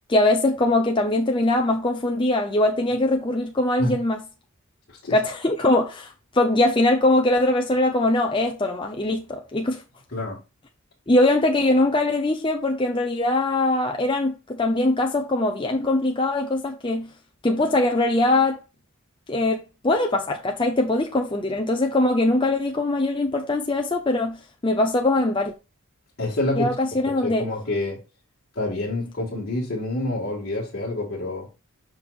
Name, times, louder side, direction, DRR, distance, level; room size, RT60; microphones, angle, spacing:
voice 1, 0.1-4.2 5.1-9.8 11.1-17.1 17.4-18.6 19.3-25.5 26.6-27.5, left 2 dB, 25° left, 0.7 m, -22 dB
voice 2, 26.2-26.8 27.0-28.0 28.6-31.5, left 2 dB, 50° left, 1.9 m, -27 dB
7.3 x 5.3 x 2.4 m
head